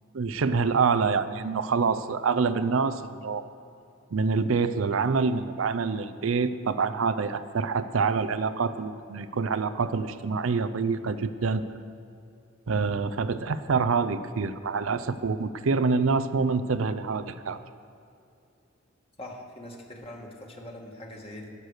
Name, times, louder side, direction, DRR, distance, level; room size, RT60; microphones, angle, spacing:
voice 1, 0.1-3.4 4.1-11.6 12.7-17.6, right 4 dB, 80° right, 13 dB, 0.5 m, -26 dB
voice 2, 19.2-21.5, left 1 dB, 30° left, 0 dB, 1.7 m, -42 dB
17.0 x 6.6 x 6.5 m, 2.7 s
head